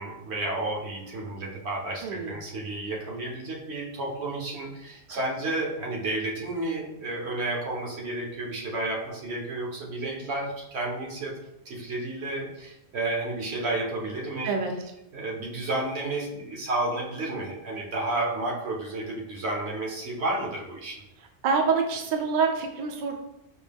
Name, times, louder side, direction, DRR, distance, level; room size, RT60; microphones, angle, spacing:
voice 1, 0.0-11.3 11.6-14.5 15.1-21.0, right 2 dB, 75° right, -2 dB, 1.1 m, -31 dB
voice 2, 2.0-2.3 5.1-5.2 14.4-14.7 21.4-23.2, right 5 dB, 60° right, 3 dB, 0.6 m, -26 dB
4.9 x 2.2 x 3.4 m, 0.85 s
omnidirectional pair, 1.1 m